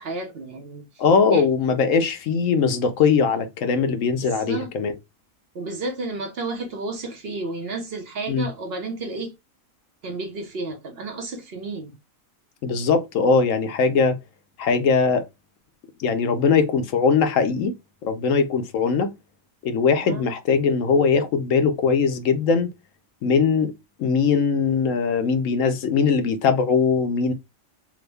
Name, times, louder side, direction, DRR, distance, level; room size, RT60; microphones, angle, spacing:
voice 1, 0.0-0.9 1.3-1.4 4.2-4.7 5.5-9.3 10.0-12.0 20.0-20.3, right 2 dB, 55° right, 0.9 m, -32 dB
voice 2, 1.0-5.0 8.3-8.5 12.6-14.2 14.6-15.3 16.0-17.7 18.0-19.1 19.6-22.7 23.2-23.7 24.0-27.3, left 5 dB, 75° left, 1.0 m, -20 dB
3.5 x 2.1 x 3.2 m
omnidirectional pair, 1.4 m